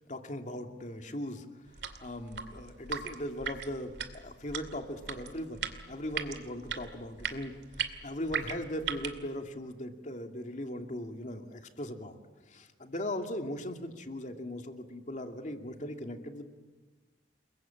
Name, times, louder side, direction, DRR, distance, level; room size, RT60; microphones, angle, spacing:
voice 1, 0.1-1.5 2.0-16.4, left 1 dB, 45° left, 5 dB, 2.6 m, -39 dB
sound 1, 1.7-9.2, right 6 dB, 70° right, 2.5 m, -39 dB
29.5 x 22.0 x 8.8 m, 1.2 s
head